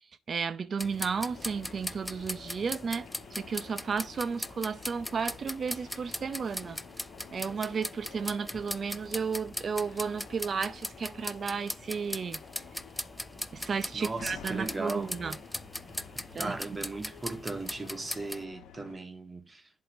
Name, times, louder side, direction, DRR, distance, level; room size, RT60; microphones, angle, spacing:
voice 1, 0.3-3.1 3.4-6.8 7.3-12.4 13.5-15.4 16.3-16.8, right 5 dB, 45° right, 0.7 m, -33 dB
sound 1, 0.8-18.4, left 1 dB, 5° left, 0.4 m, -40 dB
sound 2, 1.3-18.9, left 8 dB, 85° left, 1.4 m, -51 dB
voice 2, 13.9-15.1 16.3-19.7, right 3 dB, 25° right, 0.9 m, -37 dB
8.1 x 2.9 x 6.1 m
cardioid pair, 90°, 0 cm